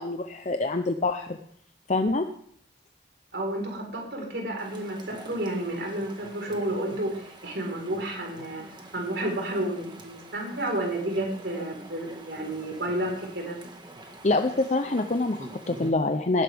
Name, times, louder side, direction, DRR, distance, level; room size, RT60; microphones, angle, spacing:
voice 1, 0.0-1.4 1.9-2.3 14.2-16.4, left 2 dB, 40° left, 6 dB, 0.7 m, -26 dB
voice 2, 3.3-8.6 8.9-13.6, right 1 dB, 70° right, 0 dB, 4.5 m, -31 dB
Chatter / Stream, 4.6-15.9, right 1 dB, 25° right, 1.7 m, -45 dB
19.0 x 10.5 x 3.5 m, 0.65 s
head